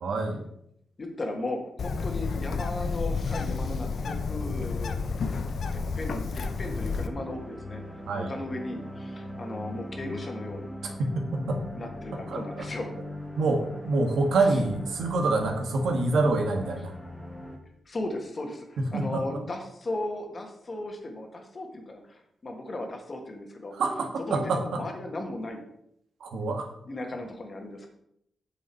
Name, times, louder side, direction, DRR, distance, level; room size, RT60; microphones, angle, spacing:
voice 1, 0.0-0.4 8.1-8.3 10.8-11.6 12.3-12.6 13.4-16.9 18.8-19.2 23.7-24.8 26.2-26.7, right 3 dB, 90° right, 3 dB, 1.6 m, -27 dB
voice 2, 1.0-5.0 5.7-10.7 11.7-12.9 17.8-23.7 24.3-25.6 26.9-27.9, left 1 dB, 30° left, 3 dB, 1.5 m, -36 dB
Bird, 1.8-7.1, left 4 dB, 55° left, 0.7 m, -30 dB
sound 1, 6.6-17.6, left 1 dB, 5° left, 1.3 m, -40 dB
8.6 x 6.9 x 4.5 m, 0.74 s
wide cardioid pair, 160°, 0 cm